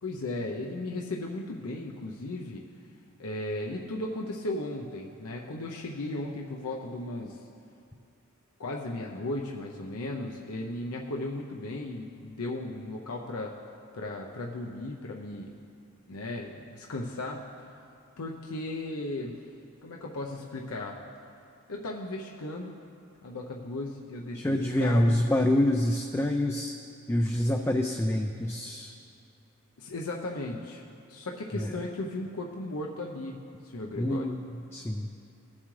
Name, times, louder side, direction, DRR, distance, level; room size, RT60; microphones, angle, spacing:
voice 1, 0.0-2.6 3.2-7.4 8.6-13.5 13.9-15.5 16.1-17.5 18.2-19.3 19.8-21.0 21.7-22.7 23.2-25.2 29.8-34.3, left 2 dB, 80° left, -1 dB, 0.7 m, -36 dB
voice 2, 24.3-26.7 27.1-28.9 34.0-35.1, left 1 dB, 10° left, 3 dB, 0.3 m, -26 dB
18.5 x 7.3 x 3.2 m, 2.5 s
head